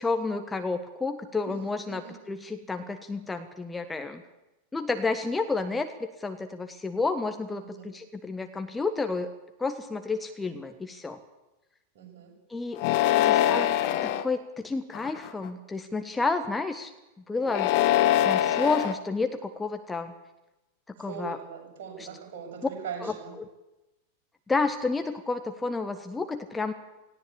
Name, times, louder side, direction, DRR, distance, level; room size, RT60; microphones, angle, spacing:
voice 1, 0.0-4.2 4.7-9.3 9.6-11.2 12.5-12.9 13.2-13.7 14.2-16.9 17.3-17.7 18.2-20.1 21.0-21.4 22.0-22.1 23.0-23.5 24.5-26.7, left 3 dB, 10° left, 7 dB, 1.4 m, -30 dB
voice 2, 1.5-2.1 7.6-7.9 11.9-12.3 21.0-23.3, right 7 dB, 50° right, 0 dB, 7.4 m, -41 dB
sound 1, 12.8-14.2 14.9-15.5 17.4-18.9, left 12 dB, 45° left, 1.3 m, -23 dB
18.0 x 17.0 x 8.6 m, 1.0 s
figure-of-eight pair, 90°, 0 cm